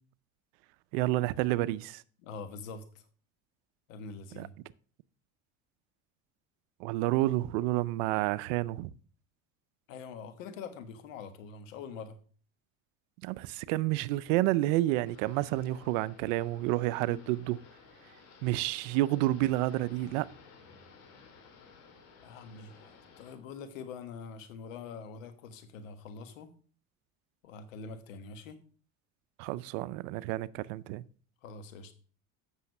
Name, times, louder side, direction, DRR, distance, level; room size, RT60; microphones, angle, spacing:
voice 1, 0.9-2.0 4.4-4.5 6.8-8.9 13.2-17.6 18.4-20.3 29.4-31.0, right 16 dB, 75° right, 0.6 m, -29 dB
voice 2, 2.2-3.0 3.9-4.5 9.9-12.2 17.1-17.2 22.2-26.5 27.4-28.6 31.4-31.9, left 5 dB, 85° left, 1.4 m, -44 dB
sound 1, 15.0-23.4, left 5 dB, 65° left, 2.7 m, -56 dB
8.2 x 6.4 x 5.3 m
supercardioid pair, 85°, 38 cm